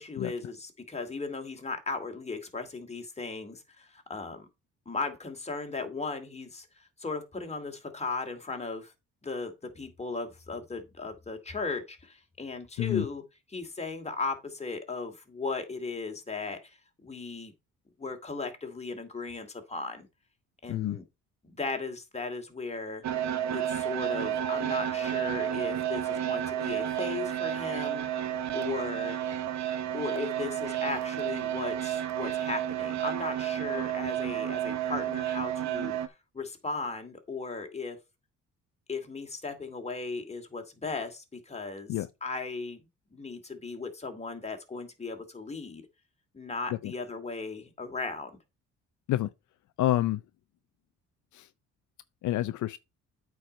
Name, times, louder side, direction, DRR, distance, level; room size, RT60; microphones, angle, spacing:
voice 1, 0.0-4.5 4.9-8.9 9.2-13.2 13.5-17.5 18.0-20.1 20.6-21.0 21.4-23.0 23.5-29.2 29.9-38.0 38.9-41.9 42.2-42.8 43.1-45.8 46.3-48.3, left 3 dB, 20° left, 2.3 m, -37 dB
voice 2, 20.7-21.0 41.9-42.1 46.7-46.9 49.1-49.3 49.8-50.2 51.3-51.5 52.2-52.8, left 14 dB, 75° left, 0.6 m, -28 dB
sound 1, 23.0-36.1, right 10 dB, 65° right, 1.2 m, -31 dB
8.6 x 4.8 x 5.2 m
cardioid pair, 90°, 30 cm